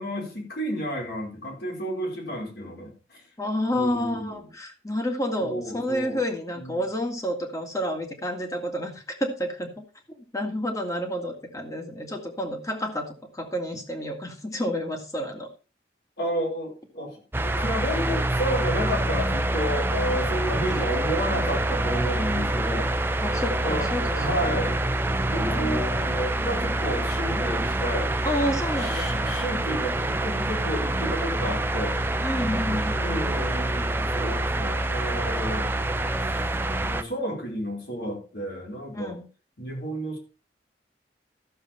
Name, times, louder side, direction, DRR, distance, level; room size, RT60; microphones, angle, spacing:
voice 1, 0.0-3.2 3.7-4.5 5.4-6.2 6.5-6.8 16.2-22.9 23.6-24.8 25.2-28.1 28.8-32.2 33.0-35.7 36.8-39.2 39.6-40.2, equal, 65° left, -1 dB, 4.8 m, -31 dB
voice 2, 3.4-9.8 10.3-15.5 20.8-20.9 23.2-24.7 25.4-25.8 28.2-29.4 32.2-33.4 38.9-39.3, equal, 20° left, 4 dB, 1.9 m, -30 dB
sound 1, 17.3-37.0, right 1 dB, 10° right, 0.6 m, -26 dB
13.5 x 7.0 x 4.3 m, 0.34 s
head